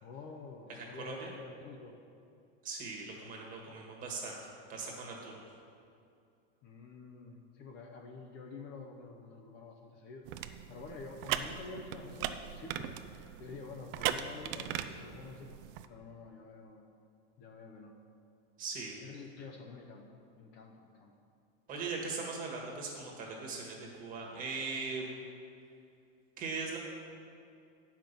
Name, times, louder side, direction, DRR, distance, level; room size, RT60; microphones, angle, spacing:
voice 1, 0.0-2.0 6.6-10.2 10.7-15.5 15.9-16.9 17.4-17.9 19.0-20.0 20.4-21.1, left 4 dB, 35° left, 1 dB, 0.7 m, -48 dB
voice 2, 0.7-1.3 2.6-4.4 4.7-5.4 18.6-18.9 21.7-25.1 26.4-26.8, right 4 dB, 25° right, -1 dB, 1.6 m, -40 dB
sound 1, 10.3-15.9, right 10 dB, 60° right, 0.5 m, -39 dB
9.0 x 5.8 x 6.7 m, 2.5 s
supercardioid pair, 165°, 30 cm